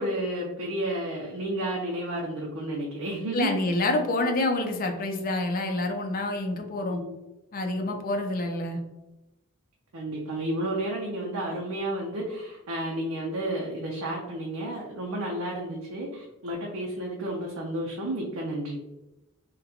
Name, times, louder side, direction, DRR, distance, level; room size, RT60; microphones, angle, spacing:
voice 1, 0.0-3.5 4.2-4.3 6.9-7.2 9.9-18.8, right 1 dB, 80° right, -2 dB, 0.6 m, -31 dB
voice 2, 3.3-7.0 7.5-8.8, left 2 dB, 40° left, 4 dB, 0.5 m, -27 dB
3.8 x 2.2 x 2.8 m, 0.97 s
head